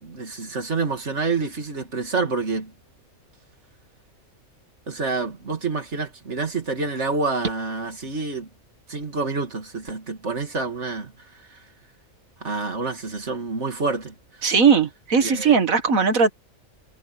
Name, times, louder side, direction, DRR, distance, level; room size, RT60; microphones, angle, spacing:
voice 1, 0.0-2.7 4.9-8.5 8.9-11.7 12.4-14.5 15.2-15.6, right 3 dB, 55° right, 2.9 m, -28 dB
voice 2, 14.4-16.3, right 5 dB, 75° right, 2.2 m, -18 dB
omnidirectional pair, 1.4 m